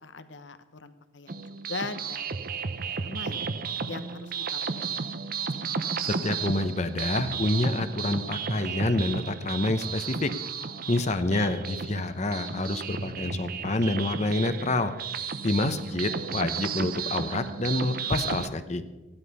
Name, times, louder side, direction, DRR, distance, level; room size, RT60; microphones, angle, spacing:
voice 1, 0.0-2.5 3.0-3.4 3.8-5.0 11.6-11.8, left 3 dB, 85° left, 11 dB, 1.1 m, -40 dB
sound 1, 1.3-18.5, right 5 dB, 50° right, 0.7 m, -33 dB
voice 2, 5.7-10.3 10.9-14.9 15.4-18.8, left 2 dB, 40° left, 10 dB, 0.8 m, -28 dB
15.5 x 11.5 x 5.5 m, 1.1 s
head